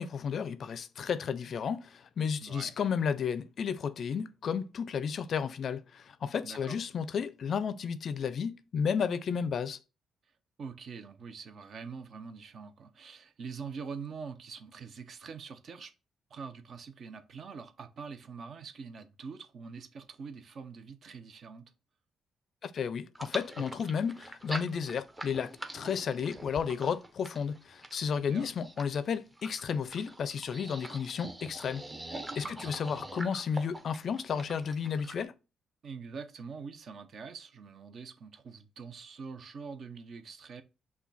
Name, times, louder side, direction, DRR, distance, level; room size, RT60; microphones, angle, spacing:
voice 1, 0.0-9.8 22.6-31.8 32.4-35.3, left 6 dB, 55° left, 0.4 m, -33 dB
voice 2, 2.4-2.7 6.4-6.8 10.6-15.9 16.3-21.7 28.3-28.5 32.4-32.7 35.8-40.6, right 5 dB, 55° right, 0.6 m, -44 dB
sound 1, 23.1-35.2, right 1 dB, 15° right, 0.7 m, -44 dB
5.7 x 2.2 x 4.0 m
cardioid pair, 90°, 0 cm